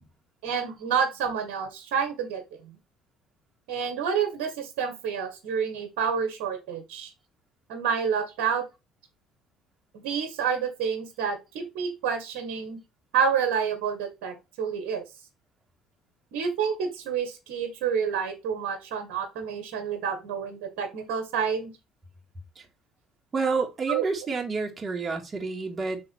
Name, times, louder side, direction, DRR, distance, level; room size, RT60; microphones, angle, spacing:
voice 1, 0.4-2.7 3.7-7.1 7.7-8.6 9.9-12.8 13.1-15.0 16.3-21.7 23.9-24.1, right 7 dB, 75° right, 1.7 m, -29 dB
voice 2, 23.3-26.0, right 4 dB, 35° right, 2.1 m, -29 dB
6.0 x 3.9 x 4.5 m
supercardioid pair, 75°, 0 cm